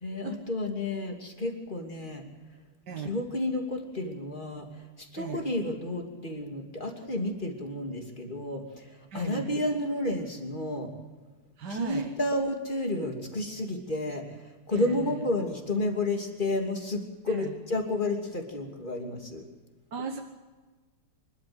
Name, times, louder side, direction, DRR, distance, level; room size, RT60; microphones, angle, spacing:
voice 1, 0.0-2.2 3.0-10.9 11.7-19.4, left 2 dB, 20° left, 3 dB, 2.9 m, -31 dB
voice 2, 9.1-9.6 11.6-12.1 14.7-15.2 17.3-17.5 19.9-20.2, right 5 dB, 55° right, 3 dB, 1.8 m, -37 dB
26.5 x 12.5 x 8.0 m, 1.3 s
omnidirectional pair, 2.4 m